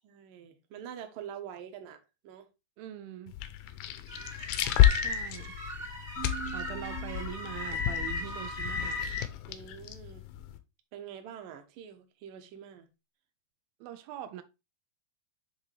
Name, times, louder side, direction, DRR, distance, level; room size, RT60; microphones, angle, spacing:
voice 1, 0.0-2.5 9.5-10.2 10.9-12.9, right 9 dB, 70° right, 2.2 m, -45 dB
voice 2, 2.8-3.4 4.9-5.6 6.5-9.0 13.8-14.4, right 12 dB, 90° right, 2.1 m, -43 dB
sound 1, 3.3-10.6, left 13 dB, 80° left, 2.2 m, -31 dB
sound 2, 4.1-9.2, left 2 dB, 45° right, 0.6 m, -36 dB
sound 3, 6.2-9.2, equal, 60° left, 0.9 m, -43 dB
9.9 x 3.5 x 3.3 m
omnidirectional pair, 4.8 m